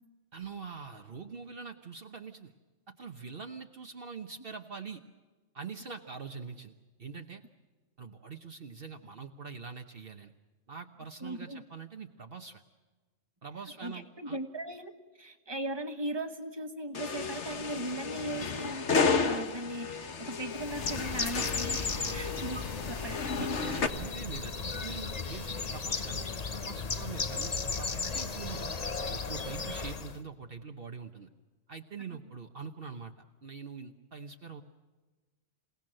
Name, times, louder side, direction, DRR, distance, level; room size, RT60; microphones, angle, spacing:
voice 1, 0.3-2.5 2.9-5.0 5.5-6.7 7.0-7.4 8.0-10.3 10.7-12.6 13.4-14.4 21.9-22.2 23.4-27.9 28.1-28.7 29.1-31.3 31.7-33.1 33.4-34.6, right 5 dB, 55° right, 4 dB, 1.2 m, -44 dB
voice 2, 11.2-11.6 13.8-21.8 22.1-23.3 23.8-23.9, right 1 dB, 20° right, 7 dB, 1.6 m, -38 dB
sound 1, 17.0-23.9, left 4 dB, 70° left, 1.6 m, -32 dB
Bird, 20.5-30.2, left 4 dB, 35° left, 1.0 m, -35 dB
28.0 x 18.0 x 7.7 m, 1.3 s
omnidirectional pair, 1.2 m